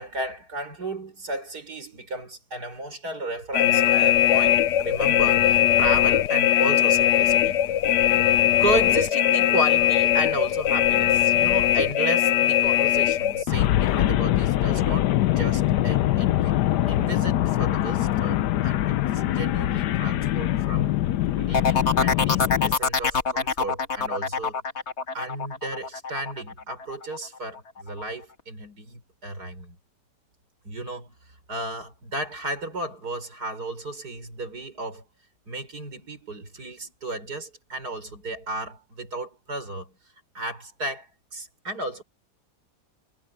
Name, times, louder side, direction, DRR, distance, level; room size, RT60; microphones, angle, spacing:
voice 1, 0.0-7.6 8.1-8.3 8.6-15.1 15.4-21.1 21.4-24.6 25.1-29.8 30.6-31.1 31.5-35.0 35.5-39.9 40.3-42.0, right 2 dB, 70° right, 6.3 m, -33 dB
sound 1, 3.5-22.8, left 12 dB, 90° left, 1.3 m, -21 dB
sound 2, 21.5-27.2 27.5-28.0, left 4 dB, 45° left, 1.8 m, -25 dB
omnidirectional pair, 1.8 m